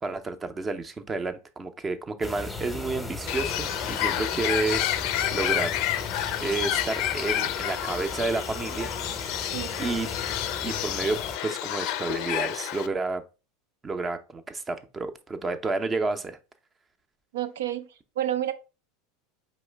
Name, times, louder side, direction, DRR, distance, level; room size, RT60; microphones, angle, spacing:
voice 1, 0.0-4.8 5.3-5.7 6.4-8.9 9.8-10.1 10.6-13.2 13.8-16.4, right 3 dB, 20° right, 0.6 m, -30 dB
sound 1, 2.2-11.4, left 2 dB, 10° left, 0.8 m, -37 dB
Bird, 3.3-12.9, left 12 dB, 60° left, 0.4 m, -29 dB
voice 2, 9.5-10.0 17.3-17.9 18.2-18.5, right 12 dB, 80° right, 0.5 m, -30 dB
4.8 x 3.1 x 3.3 m
hypercardioid pair, 100°, 0 cm